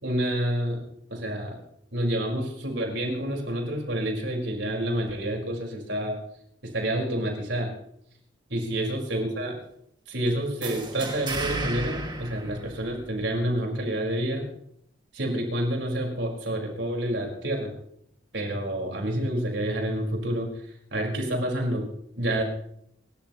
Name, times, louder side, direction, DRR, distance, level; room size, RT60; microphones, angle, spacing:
voice 1, 0.0-0.8 1.1-1.6 1.9-6.2 6.7-7.7 8.5-9.6 10.1-14.4 15.1-17.7 18.3-20.5 20.9-21.8 22.2-22.4, right 1 dB, 80° right, 0 dB, 4.9 m, -28 dB
sound 1, 10.6-13.3, right 2 dB, 25° right, 2.1 m, -34 dB
29.0 x 13.5 x 3.1 m, 0.70 s
head